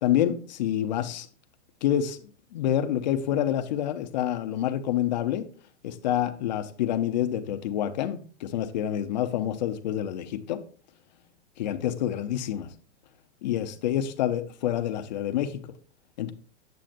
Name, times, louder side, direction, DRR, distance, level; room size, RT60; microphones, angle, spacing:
voice 1, 0.0-1.3 1.8-2.2 2.5-5.5 5.8-10.6 11.6-12.7 13.4-15.6 16.2-16.3, left 11 dB, 35° left, 0.6 m, -27 dB
8.9 x 7.6 x 2.5 m
hypercardioid pair, 165°, 37 cm